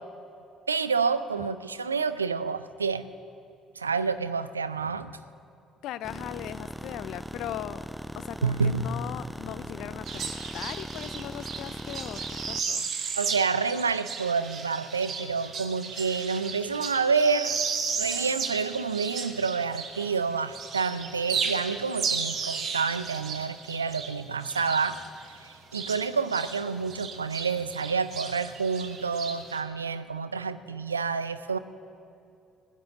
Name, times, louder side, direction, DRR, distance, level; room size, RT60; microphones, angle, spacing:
voice 1, 0.7-3.1 3.8-5.2 8.4-8.9 13.2-17.6 17.9-25.0 25.4-31.6, right 5 dB, 85° right, 13 dB, 0.4 m, -28 dB
voice 2, 5.8-7.8 8.2-12.9 22.1-22.2, left 12 dB, 60° left, 15 dB, 0.4 m, -39 dB
sound 1, 6.0-12.6, equal, ahead, 0.4 m, -39 dB
sound 2, 10.0-20.2 20.5-26.6 26.9-29.6, right 5 dB, 50° right, 1.4 m, -34 dB
19.0 x 10.0 x 6.8 m, 2.5 s
figure-of-eight pair, 50°, 0 cm